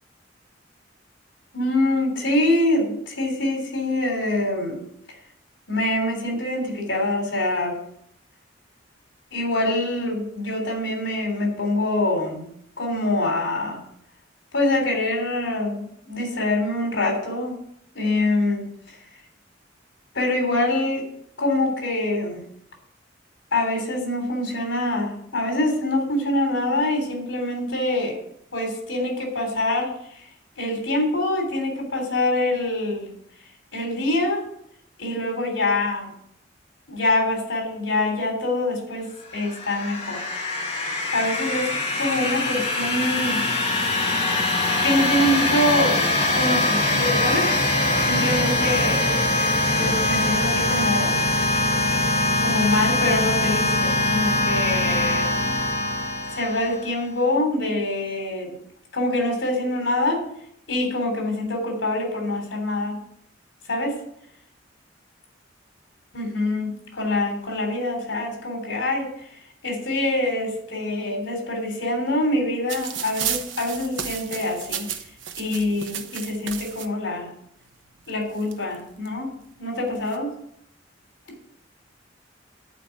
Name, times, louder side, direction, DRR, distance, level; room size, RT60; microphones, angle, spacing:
voice 1, 1.5-4.8 5.7-7.8 9.3-12.4 12.8-13.8 14.5-17.5 17.9-18.7 20.1-21.0 21.4-22.4 23.5-28.2 28.5-30.2 30.6-33.1 33.7-34.4 35.0-36.1 36.9-40.2 41.1-41.7 42.0-43.4 44.8-46.0 46.3-47.5 48.1-49.1 49.7-51.2 52.4-55.3 56.3-58.6 58.9-60.2 60.7-63.0 63.7-64.0 66.1-69.1 69.6-74.9 75.4-77.3 78.1-79.3 79.6-80.3, left 1 dB, 75° left, 2 dB, 3.4 m, -25 dB
sound 1, 39.4-57.0, left 2 dB, 30° left, 2.0 m, -23 dB
sound 2, 72.7-76.9 77.8-77.9 78.1-79.1 79.8-80.2, right 9 dB, 85° right, 1.0 m, -32 dB
11.0 x 5.0 x 8.4 m, 0.72 s
head